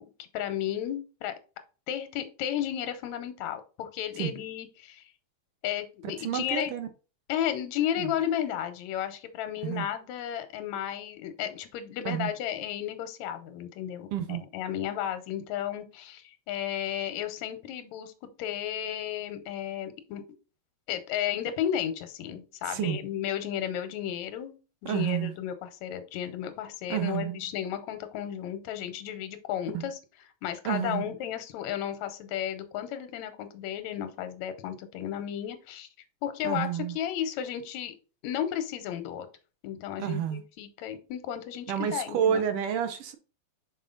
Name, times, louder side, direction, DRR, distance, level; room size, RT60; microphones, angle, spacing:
voice 1, 0.0-1.3 1.9-5.0 5.6-6.7 7.3-18.1 18.4-20.2 20.9-24.6 24.8-30.0 30.4-35.9 36.2-37.9 38.2-39.3 39.6-41.7 41.9-42.5, left 10 dB, 75° left, 2.1 m, -33 dB
voice 2, 6.2-6.9 8.0-8.1 9.6-9.9 12.0-12.3 14.1-14.4 22.6-23.0 24.8-25.3 26.9-27.5 29.7-29.9 30.6-31.1 36.4-37.0 40.0-40.4 41.7-43.2, right 9 dB, 70° right, 1.5 m, -30 dB
5.6 x 4.8 x 3.8 m
omnidirectional pair, 3.3 m